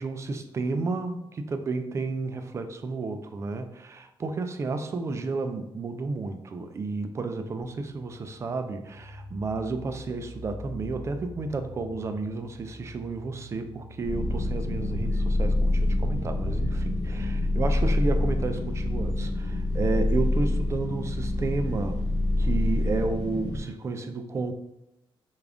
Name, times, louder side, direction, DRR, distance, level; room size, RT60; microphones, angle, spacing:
voice 1, 0.0-22.0 22.4-24.5, right 3 dB, 30° right, 7 dB, 0.3 m, -32 dB
sound 1, 7.6-21.9, left 1 dB, 35° left, 1.1 m, -46 dB
sound 2, 14.0-23.6, left 1 dB, 65° left, 1.3 m, -26 dB
3.4 x 2.4 x 3.6 m, 0.88 s
wide cardioid pair, 150°, 9 cm